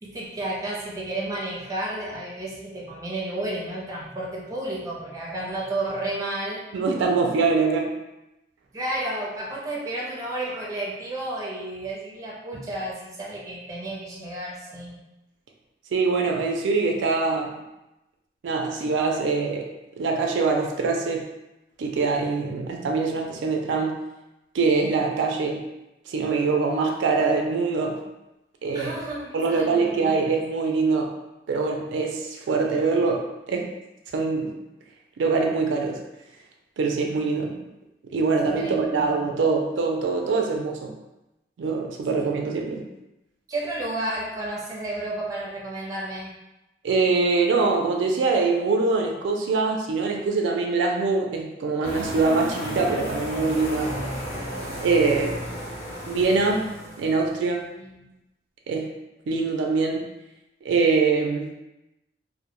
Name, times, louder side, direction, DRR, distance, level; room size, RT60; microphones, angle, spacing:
voice 1, 0.0-6.6 8.7-15.0 28.7-30.3 38.4-39.2 42.1-42.3 43.5-46.3 57.8-58.1, right 1 dB, 20° right, -4 dB, 0.4 m, -32 dB
voice 2, 6.7-7.9 15.9-17.6 18.4-19.7 20.0-21.2 21.8-24.0 24.5-25.6 26.1-28.0 28.6-28.9 29.3-31.1 31.5-33.2 33.5-33.7 34.1-34.5 35.2-36.0 36.8-37.5 38.1-40.9 41.6-42.8 46.8-53.9 54.8-55.4 56.1-56.7 57.0-57.7 58.7-58.9 59.3-60.1 60.6-61.6, right 4 dB, 85° right, 2 dB, 0.3 m, -23 dB
sound 1, 51.8-57.3, equal, 40° left, 0.9 m, -33 dB
2.1 x 2.1 x 2.9 m, 0.95 s
head